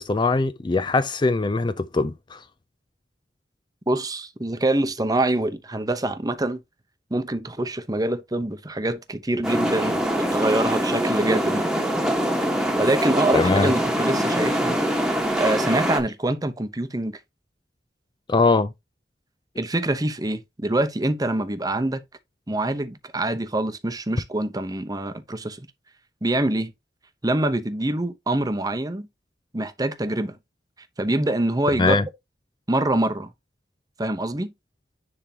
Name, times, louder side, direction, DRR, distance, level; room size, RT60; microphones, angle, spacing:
voice 1, 0.0-2.4 13.3-13.7 18.3-18.7 31.8-32.0, left 3 dB, 25° left, 0.4 m, -21 dB
voice 2, 3.9-6.6 7.1-11.6 12.8-14.8 15.4-17.2 19.6-22.0 22.5-25.7 26.2-26.7 27.2-29.1 29.5-30.4 31.0-32.0 32.7-33.3 34.0-34.5, right 1 dB, 20° right, 0.8 m, -25 dB
sound 1, 9.4-16.0, equal, 5° right, 1.3 m, -23 dB
10.0 x 3.6 x 2.8 m
head